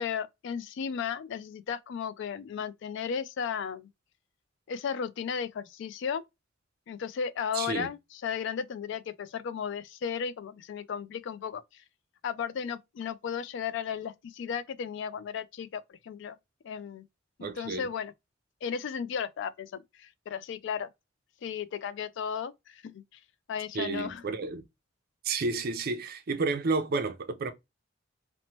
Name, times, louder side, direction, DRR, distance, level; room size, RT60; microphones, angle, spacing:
voice 1, 0.0-3.9 4.7-6.2 6.9-11.6 12.2-16.4 16.6-17.0 17.4-18.1 18.6-20.9 21.4-23.0 23.5-24.2, left 7 dB, 65° left, 0.3 m, -35 dB
voice 2, 7.5-7.9 17.4-17.9 23.7-24.6 25.2-27.5, right 3 dB, 50° right, 0.5 m, -31 dB
2.9 x 2.1 x 2.7 m
head